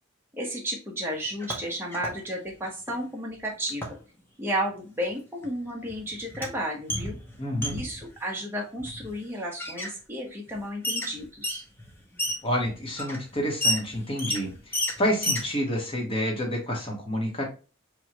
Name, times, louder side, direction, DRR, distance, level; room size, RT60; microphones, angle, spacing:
voice 1, 0.3-4.0 4.4-7.2 7.7-11.6, equal, 10° right, -1 dB, 1.0 m, -33 dB
sound 1, 1.2-2.2 2.5-3.0 3.7-4.0 5.1-5.2 5.4-8.1 8.8-9.2 9.6-9.9 10.5-10.6 10.8-15.5, left 1 dB, 10° left, 0.7 m, -31 dB
voice 2, 7.4-7.8 12.4-17.5, equal, 25° left, 0 dB, 1.1 m, -29 dB
4.9 x 2.4 x 2.9 m, 0.34 s
head